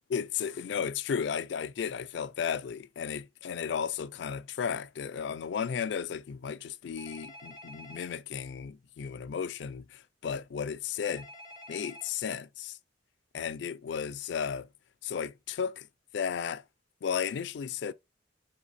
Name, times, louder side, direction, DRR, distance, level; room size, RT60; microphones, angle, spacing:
voice 1, 0.1-11.3 11.7-12.8 13.3-14.7 15.0-15.9 16.1-16.6 17.0-17.9, left 7 dB, 70° left, 0.3 m, -34 dB
Telephone, 7.0-8.1 11.0-12.1, left 1 dB, 30° right, 1.8 m, -48 dB
3.3 x 3.2 x 4.1 m
head